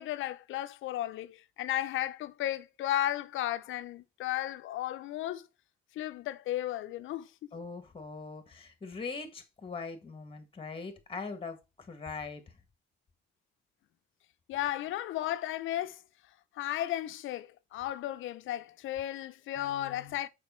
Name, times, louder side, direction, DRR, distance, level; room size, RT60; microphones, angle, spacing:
voice 1, 0.0-5.4 6.0-7.3 14.5-16.0 16.6-20.3, left 13 dB, 80° left, 0.6 m, -34 dB
voice 2, 7.5-12.4 19.6-20.2, left 4 dB, 25° left, 1.6 m, -42 dB
6.7 x 5.1 x 4.4 m
cardioid pair, 90°, 20 cm